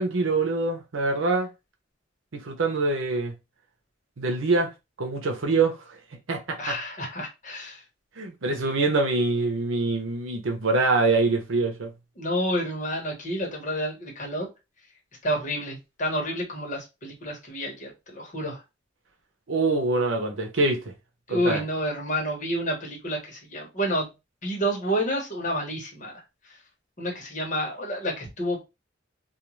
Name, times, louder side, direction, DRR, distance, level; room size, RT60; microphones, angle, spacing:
voice 1, 0.0-1.5 2.3-3.3 4.2-4.7 5.0-5.8 6.3-6.8 8.2-11.9 19.5-20.8 21.3-21.6, right 3 dB, 80° right, 0.7 m, -24 dB
voice 2, 6.6-7.8 12.2-14.5 15.2-18.6 21.3-24.1 24.4-26.2 27.0-28.6, equal, 40° left, 1.1 m, -29 dB
2.4 x 2.4 x 3.1 m
head